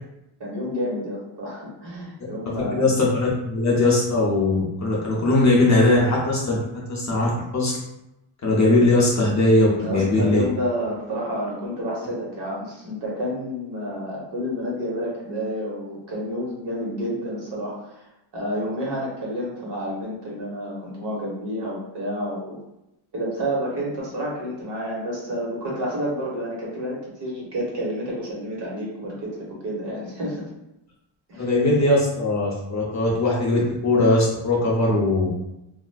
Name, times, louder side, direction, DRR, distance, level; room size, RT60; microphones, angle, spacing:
voice 1, 0.4-2.9 9.8-18.0 18.3-22.6 23.1-30.5 31.3-31.5, equal, 55° right, -4 dB, 1.2 m, -29 dB
voice 2, 2.6-6.6 6.9-7.8 8.4-10.4 31.4-35.3, left 2 dB, 35° left, -5 dB, 0.5 m, -20 dB
3.3 x 2.4 x 2.3 m, 0.88 s
wide cardioid pair, 145°, 49 cm